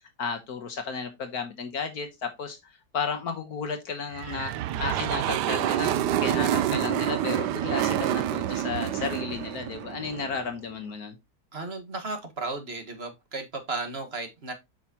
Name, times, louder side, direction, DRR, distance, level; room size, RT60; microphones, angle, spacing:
voice 1, 0.2-11.1, left 5 dB, 65° left, 1.6 m, -33 dB
sound 1, 4.1-10.5, right 11 dB, 85° right, 1.2 m, -28 dB
voice 2, 11.5-14.5, right 3 dB, 40° right, 1.8 m, -34 dB
8.0 x 6.1 x 2.8 m
omnidirectional pair, 1.8 m